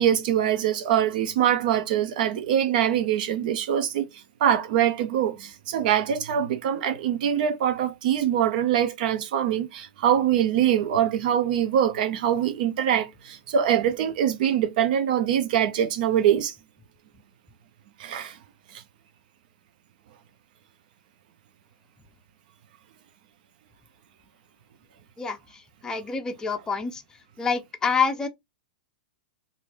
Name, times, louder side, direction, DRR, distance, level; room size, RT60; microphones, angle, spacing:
voice 1, 0.0-16.5 18.0-18.4 18.7-18.8, right 10 dB, 60° right, 0.5 m, -23 dB
voice 2, 25.2-27.0 27.4-28.3, left 5 dB, 15° left, 0.5 m, -27 dB
3.0 x 2.5 x 2.5 m
hypercardioid pair, 115°, 5 cm